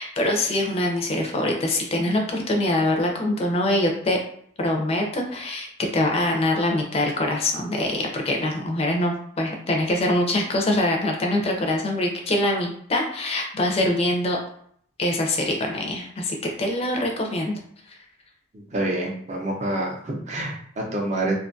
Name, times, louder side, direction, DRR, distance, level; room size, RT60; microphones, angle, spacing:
voice 1, 0.0-4.2 4.6-5.7 5.9-14.4 15.0-17.6 17.9-18.0, left 1 dB, 30° left, 2 dB, 0.4 m, -24 dB
voice 2, 18.5-21.4, right 1 dB, 35° right, -1 dB, 0.5 m, -27 dB
2.5 x 2.3 x 2.5 m, 0.63 s
head